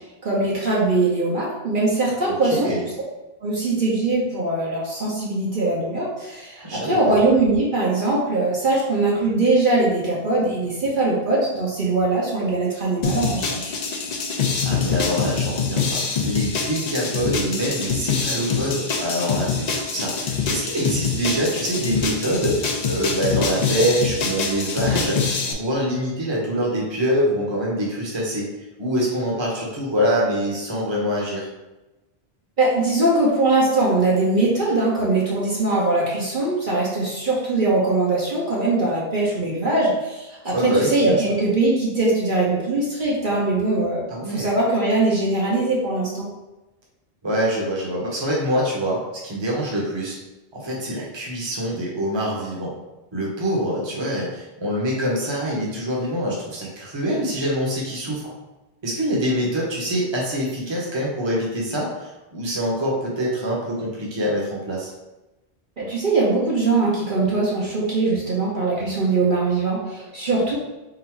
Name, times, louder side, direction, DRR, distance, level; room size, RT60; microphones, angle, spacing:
voice 1, 0.2-2.7 3.4-13.7 32.6-46.3 65.8-70.6, right 2 dB, 55° right, -5 dB, 1.0 m, -21 dB
voice 2, 2.3-2.8 6.6-7.2 14.6-28.5 28.8-31.5 40.5-41.2 44.1-44.5 47.2-50.2 50.5-52.7 53.1-58.3 58.8-64.9, equal, 25° right, -3 dB, 1.0 m, -25 dB
sound 1, 13.0-25.5, left 5 dB, 50° left, 0.6 m, -25 dB
3.9 x 2.6 x 4.4 m, 1.0 s
omnidirectional pair, 1.1 m